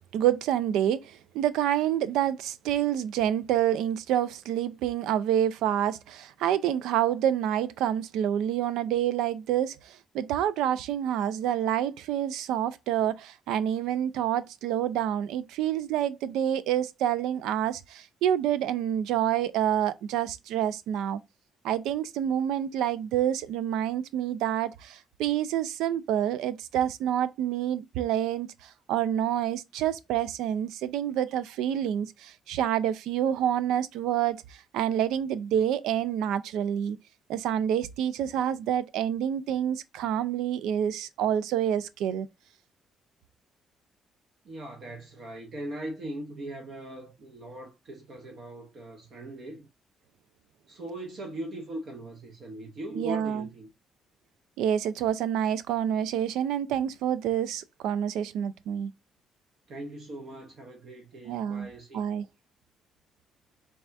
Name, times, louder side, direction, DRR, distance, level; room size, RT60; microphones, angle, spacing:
voice 1, 0.1-21.2 21.6-37.0 37.3-42.3 52.9-53.5 54.6-58.9 61.3-62.3, right 10 dB, 85° right, 0.3 m, -28 dB
voice 2, 44.4-49.7 50.7-53.7 59.7-62.0, right 1 dB, 60° right, 0.8 m, -40 dB
4.1 x 2.3 x 2.5 m
supercardioid pair, 70°, 0 cm